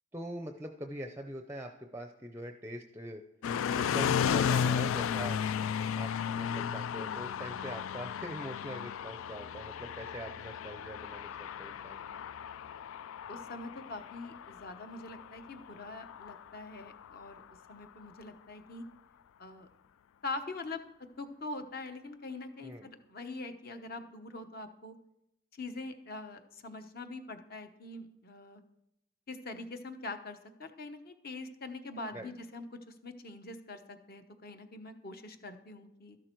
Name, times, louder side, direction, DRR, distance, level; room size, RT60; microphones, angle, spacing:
voice 1, 0.1-3.2 3.8-5.4 6.0-12.0 22.6-22.9 32.1-32.3, right 1 dB, 10° right, 6 dB, 0.5 m, -43 dB
sound 1, 3.4-17.4, left 7 dB, 75° left, 0.3 m, -34 dB
voice 2, 13.3-17.4 17.7-18.8 19.4-19.7 20.2-20.8 21.2-24.9 25.5-28.6 29.3-36.2, left 2 dB, 45° left, 7 dB, 1.0 m, -43 dB
13.0 x 11.5 x 4.5 m, 0.84 s
head